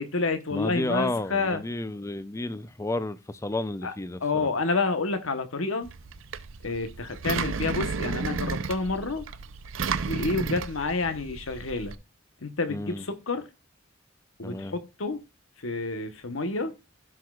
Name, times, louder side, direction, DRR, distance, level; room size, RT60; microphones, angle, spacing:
voice 1, 0.0-1.6 3.8-3.9 4.2-5.9 6.6-9.2 10.0-12.0 12.4-13.5 14.4-15.2 15.6-16.7, left 3 dB, 80° left, 1.0 m, -29 dB
voice 2, 0.5-4.5 12.7-13.0 14.4-14.7, left 2 dB, 15° left, 0.5 m, -31 dB
Engine, 5.8-11.9, right 5 dB, 70° right, 0.6 m, -33 dB
16.5 x 6.1 x 2.4 m
head